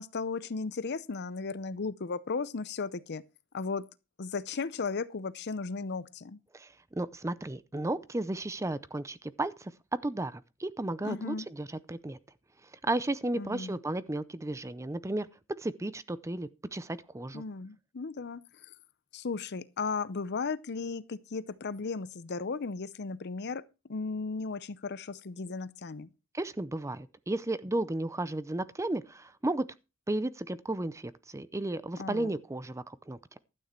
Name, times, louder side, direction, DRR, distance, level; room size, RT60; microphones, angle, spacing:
voice 1, 0.0-3.2 3.5-3.9 4.2-6.4 11.0-11.5 13.3-13.7 17.3-18.7 19.1-23.6 23.9-26.1 32.0-32.3, left 4 dB, 55° left, 0.6 m, -35 dB
voice 2, 6.5-9.7 10.0-12.2 12.8-17.4 26.3-29.7 30.1-33.2, right 2 dB, 15° right, 0.5 m, -34 dB
12.5 x 9.2 x 4.4 m
head